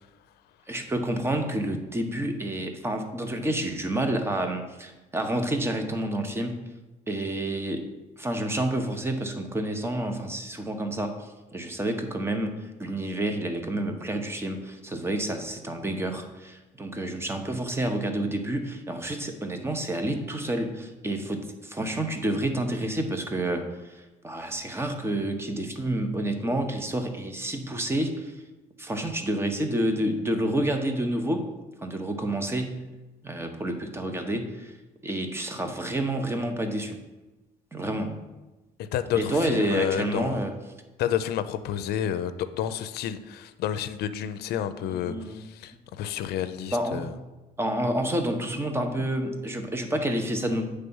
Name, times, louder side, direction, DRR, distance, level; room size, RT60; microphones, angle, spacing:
voice 1, 0.7-6.6 7.1-7.9 8.2-28.3 28.8-31.5 31.8-32.8 33.2-34.7 35.0-37.0 37.7-38.1 39.2-40.5 44.9-45.4 46.7-47.2 47.6-50.6, right 1 dB, 15° right, 6 dB, 0.8 m, -29 dB
voice 2, 38.8-40.4 41.0-47.1, left 10 dB, 70° left, 12 dB, 0.5 m, -30 dB
8.3 x 3.4 x 5.4 m, 1.1 s
cardioid pair, 110°, 17 cm